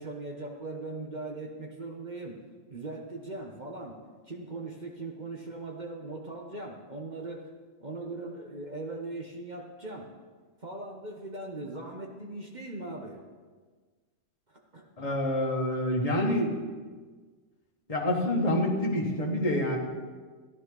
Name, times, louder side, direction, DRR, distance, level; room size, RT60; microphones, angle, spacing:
voice 1, 0.0-2.4 2.7-4.0 4.3-7.4 7.8-10.1 10.6-13.2 14.5-14.8, right 2 dB, 35° right, 1 dB, 1.1 m, -39 dB
voice 2, 15.0-16.6 17.9-19.8, left 1 dB, 30° left, -2 dB, 1.7 m, -27 dB
15.5 x 11.0 x 3.9 m, 1.4 s
omnidirectional pair, 1.4 m